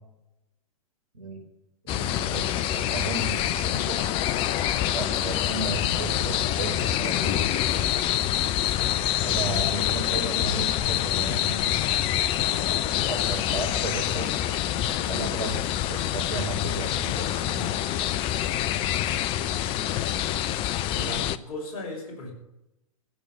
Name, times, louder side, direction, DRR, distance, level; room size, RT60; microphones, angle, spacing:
voice 1, 1.8-4.1 4.9-7.8 9.2-11.7 13.1-14.6 15.1-15.6 15.9-17.8, right 3 dB, 75° right, 3 dB, 4.6 m, -34 dB
sound 1, 1.9-21.4, left 12 dB, 30° left, 0.6 m, -26 dB
voice 2, 20.9-22.3, left 1 dB, 45° left, 0 dB, 6.4 m, -36 dB
15.5 x 8.3 x 8.5 m, 0.90 s
figure-of-eight pair, 105°, 18 cm